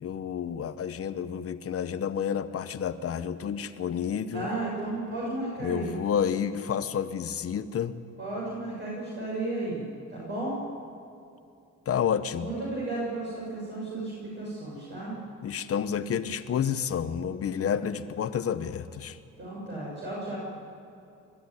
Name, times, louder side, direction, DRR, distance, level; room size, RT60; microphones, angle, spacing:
voice 1, 0.0-4.5 5.6-8.0 11.9-12.5 15.4-19.2, left 8 dB, 50° left, 11 dB, 1.0 m, -30 dB
voice 2, 4.3-5.9 8.2-9.8 10.1-10.6 12.4-15.2 19.4-20.4, right 2 dB, 35° right, -6 dB, 7.0 m, -33 dB
21.5 x 13.0 x 9.8 m, 2.6 s
cardioid pair, 110°, 30 cm